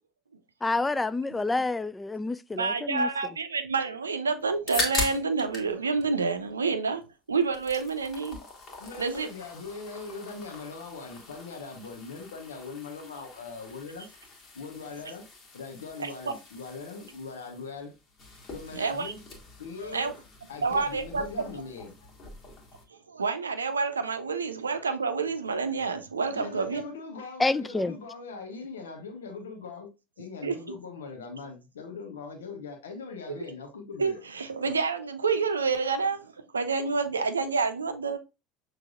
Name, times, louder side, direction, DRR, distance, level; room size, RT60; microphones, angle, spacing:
voice 1, 0.6-3.1 27.4-27.9, left 3 dB, 15° left, 0.3 m, -28 dB
voice 2, 2.5-7.0 7.3-8.4 9.0-9.3 16.0-16.1 18.7-19.1 19.8-20.1 20.6-21.3 23.1-26.8 30.4-30.8 34.0-38.2, right 4 dB, 80° right, 0.5 m, -28 dB
sound 1, 4.4-5.7 6.0-7.0 7.3-22.9, left 3 dB, 40° left, 1.5 m, -40 dB
voice 3, 8.8-14.1 14.5-15.3 15.5-17.9 18.5-19.2 19.6-20.2 20.5-21.9 26.3-29.9 30.2-34.2, left 4 dB, 75° left, 1.0 m, -41 dB
6.1 x 3.2 x 2.4 m
figure-of-eight pair, 70°, 0 cm